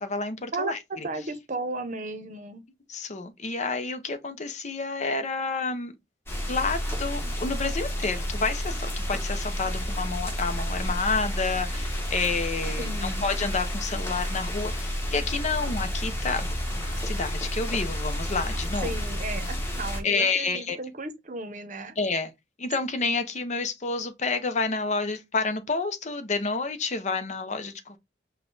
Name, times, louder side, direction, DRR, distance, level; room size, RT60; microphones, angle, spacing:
voice 1, 0.0-1.1 2.9-5.9 6.5-18.9 20.0-20.8 22.0-22.3 22.6-28.0, left 4 dB, 40° left, 0.7 m, -29 dB
voice 2, 1.0-2.6 12.8-13.3 18.8-21.9, right 2 dB, 45° right, 0.8 m, -34 dB
sound 1, 6.3-20.0, equal, 15° left, 1.3 m, -30 dB
5.6 x 2.3 x 3.9 m
head